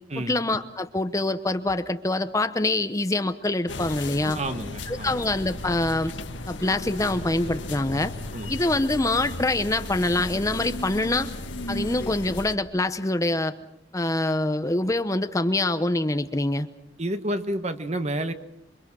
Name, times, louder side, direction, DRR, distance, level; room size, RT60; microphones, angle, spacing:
voice 1, 0.3-4.4 4.9-6.1 6.5-8.1 8.5-11.3 11.7-13.5 13.9-16.7, left 2 dB, 15° left, 10 dB, 0.8 m, -25 dB
sound 1, 3.7-12.5, left 2 dB, 90° left, 1.7 m, -35 dB
voice 2, 4.3-5.2 8.3-8.5 17.0-18.3, right 1 dB, 35° right, 9 dB, 1.5 m, -29 dB
27.5 x 24.5 x 6.2 m, 0.81 s
head